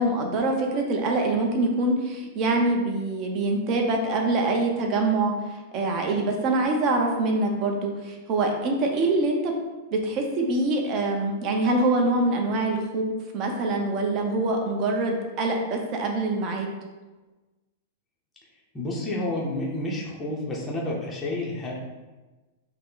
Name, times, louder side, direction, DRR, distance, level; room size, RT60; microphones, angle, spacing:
voice 1, 0.0-5.3 5.7-9.5 9.9-16.7, right 2 dB, 30° right, 2 dB, 0.6 m, -24 dB
voice 2, 18.7-21.7, left 1 dB, 10° left, -4 dB, 0.6 m, -30 dB
5.5 x 2.0 x 3.8 m, 1.2 s
supercardioid pair, 165°, 0 cm